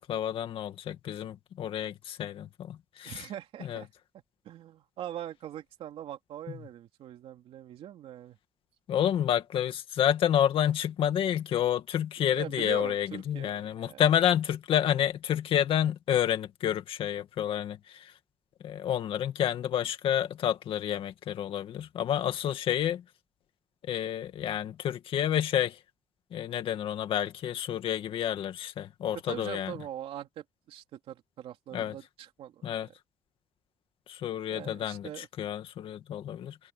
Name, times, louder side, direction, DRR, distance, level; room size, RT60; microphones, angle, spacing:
voice 1, 0.0-3.3 3.6-3.8 8.9-18.1 18.6-23.0 23.9-25.8 26.3-29.7 31.7-31.9 32.6-32.9 34.1-36.6, left 10 dB, 65° left, 2.2 m, -29 dB
voice 2, 3.0-3.9 4.4-8.4 12.3-14.1 29.3-32.9 34.5-35.3, right 11 dB, 80° right, 2.9 m, -42 dB
cardioid pair, 145°, 10 cm